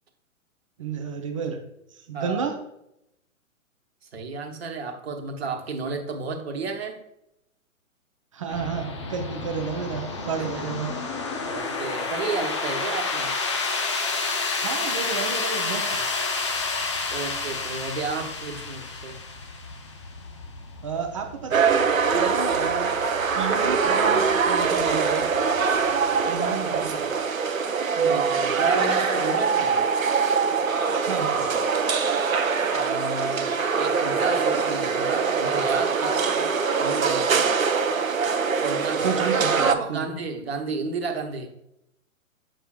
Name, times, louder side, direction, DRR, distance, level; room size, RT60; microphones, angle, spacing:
voice 1, 0.8-1.6 2.1-2.5 8.3-10.9 14.6-16.0 20.8-22.9 23.4-25.2 26.3-27.0 28.0-28.2 31.1-31.5 39.0-40.1, right 6 dB, 25° right, 3 dB, 0.5 m, -31 dB
voice 2, 2.1-2.5 4.0-7.0 10.6-10.8 11.4-13.3 17.1-19.2 28.0-29.8 32.7-37.5 38.6-39.3 39.6-41.5, right 4 dB, 50° right, 4 dB, 1.1 m, -32 dB
sound 1, 8.5-27.1, left 4 dB, 25° left, 0.4 m, -31 dB
sound 2, 21.5-39.7, right 5 dB, 75° right, 0.7 m, -23 dB
7.4 x 5.4 x 2.3 m, 0.81 s
figure-of-eight pair, 120°, 41 cm